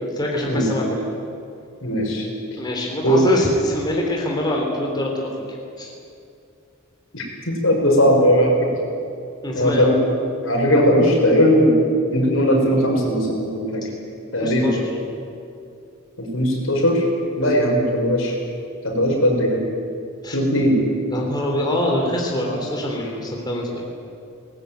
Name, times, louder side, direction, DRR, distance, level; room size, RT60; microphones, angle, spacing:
voice 1, 0.0-1.1 2.6-5.9 9.4-10.0 14.4-14.9 20.2-20.4 21.1-23.8, left 1 dB, 20° left, 0 dB, 3.1 m, -25 dB
voice 2, 1.8-2.3 3.0-3.2 7.1-8.7 9.5-10.0 10.4-11.8 12.1-13.9 14.3-14.7 16.2-17.1 17.4-18.3 18.8-19.6 20.3-20.8 22.5-22.6, equal, 70° left, 0 dB, 5.9 m, -18 dB
21.0 x 19.0 x 9.3 m, 2.5 s
head